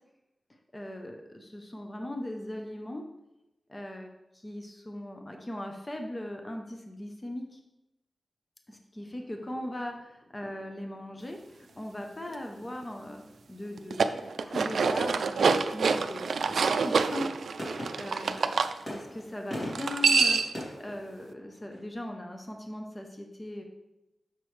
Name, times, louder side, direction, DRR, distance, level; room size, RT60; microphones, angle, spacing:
voice 1, 0.7-3.1 3.7-7.6 8.7-13.2 13.5-17.3 17.6-18.5 18.9-23.6, left 1 dB, 20° left, 3 dB, 0.6 m, -39 dB
sound 1, 9.0-21.9, equal, 40° left, 2.5 m, -45 dB
sound 2, 13.8-18.7 19.7-20.6, right 5 dB, 80° right, 0.3 m, -26 dB
6.7 x 6.0 x 3.2 m, 0.94 s
wide cardioid pair, 150°, 0 cm